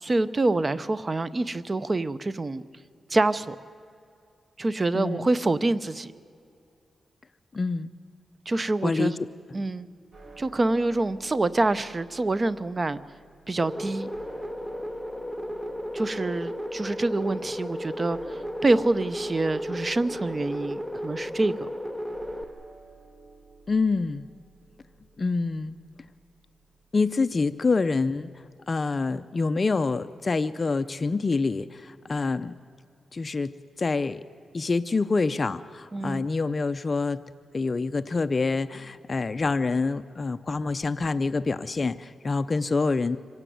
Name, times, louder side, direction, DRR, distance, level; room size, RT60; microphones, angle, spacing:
voice 1, 0.0-2.6 3.1-3.6 4.6-6.1 8.5-9.2 9.5-9.9 10.4-13.0 13.5-14.1 15.9-21.5 35.9-36.3, right 2 dB, 30° right, 15 dB, 0.7 m, -26 dB
voice 2, 4.9-5.3 7.5-7.9 8.8-9.3 23.7-24.3 25.2-25.8 26.9-28.3 28.7-32.5 33.1-34.2 34.5-37.2 37.5-43.2, left 3 dB, 35° left, 12 dB, 0.5 m, -26 dB
sound 1, 10.1-28.4, right 3 dB, 60° right, 4.7 m, -53 dB
sound 2, 13.6-22.4, equal, ahead, 1.0 m, -34 dB
25.5 x 16.0 x 9.3 m, 2.4 s
wide cardioid pair, 105°, 0 cm